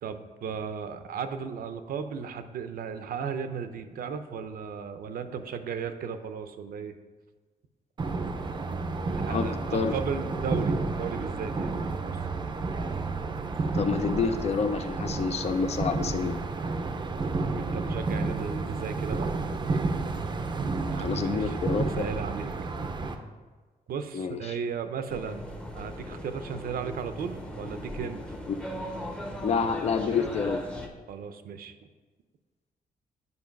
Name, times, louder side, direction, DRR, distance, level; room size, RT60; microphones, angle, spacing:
voice 1, 0.0-7.0 9.1-12.2 17.3-19.3 19.6-19.8 20.9-21.6 21.8-22.7 23.9-25.4 25.7-28.2 31.1-31.7, right 6 dB, 65° right, 9 dB, 0.7 m, -35 dB
sound 1, 8.0-23.1, right 3 dB, 30° right, 0.6 m, -31 dB
voice 2, 9.3-10.0 13.7-16.4 21.0-21.9 24.1-24.4 28.5-28.6 29.4-30.6, left 5 dB, 40° left, 9 dB, 0.5 m, -28 dB
sound 2, 25.1-30.9, equal, 5° left, 0.7 m, -38 dB
9.7 x 5.4 x 5.3 m, 1.4 s
wide cardioid pair, 180°, 16 cm